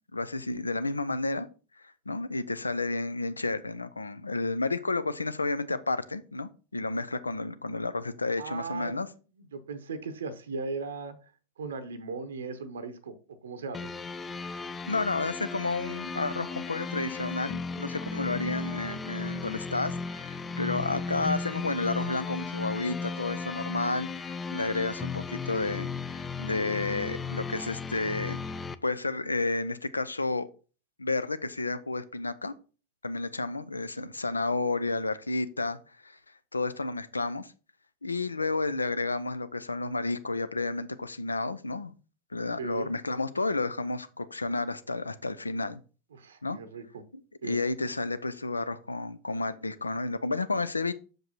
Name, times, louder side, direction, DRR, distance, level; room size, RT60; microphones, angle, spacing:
voice 1, 0.1-1.5 1.8-9.1 14.9-28.4 28.8-30.5 31.0-32.5 33.0-35.8 36.0-36.2 36.5-37.5 38.0-41.9 42.3-45.8 46.4-46.6 47.4-50.9, left 3 dB, 80° left, 14 dB, 0.5 m, -31 dB
voice 2, 8.4-8.9 9.5-11.1 11.6-13.1 13.4-13.9 42.6-42.9 46.1-47.0 47.4-47.6, right 4 dB, 65° right, 11 dB, 0.8 m, -37 dB
sound 1, 13.7-28.8, left 4 dB, 15° left, 0.4 m, -35 dB
6.2 x 5.1 x 4.0 m, 0.36 s
figure-of-eight pair, 90°, 0 cm